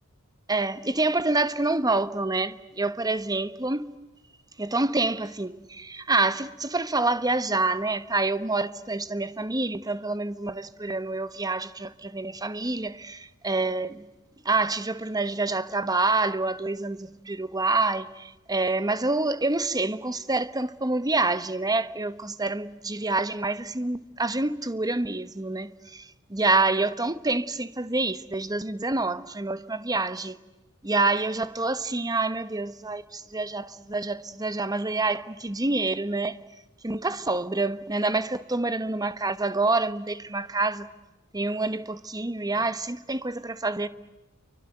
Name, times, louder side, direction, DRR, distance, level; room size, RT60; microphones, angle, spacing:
voice 1, 0.5-3.9 4.6-14.0 14.4-30.4 30.8-36.4 36.8-40.9 41.3-43.9, right 3 dB, 15° right, 1.2 m, -27 dB
28.0 x 25.0 x 7.9 m
head